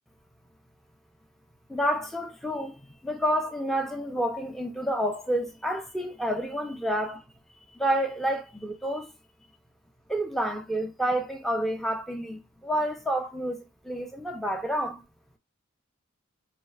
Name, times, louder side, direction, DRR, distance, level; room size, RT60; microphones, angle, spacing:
voice 1, 1.7-7.2 7.7-9.1 10.1-15.0, equal, ahead, 0.3 m, -29 dB
4.3 x 3.1 x 2.2 m
head